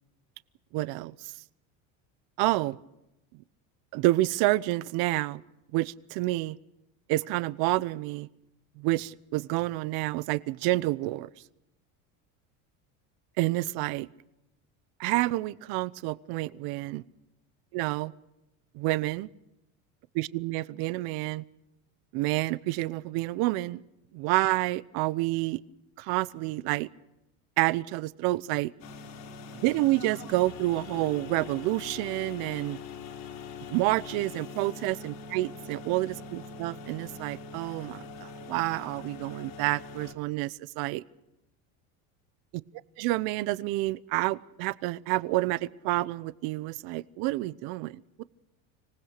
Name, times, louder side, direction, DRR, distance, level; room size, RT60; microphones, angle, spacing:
voice 1, 0.7-1.3 2.4-2.8 3.9-5.4 5.7-6.6 7.1-8.3 8.8-11.3 13.4-14.1 15.0-17.0 17.7-18.1 18.7-19.3 20.1-21.4 22.1-23.8 24.1-25.6 26.0-26.9 27.6-28.7 29.6-32.8 33.7-41.0 43.0-48.2, right 19 dB, 65° right, 18 dB, 0.9 m, -29 dB
sound 1, 28.8-40.1, left 5 dB, 60° left, 3.5 m, -43 dB
25.5 x 19.0 x 6.7 m, 0.86 s
supercardioid pair, 130°, 41 cm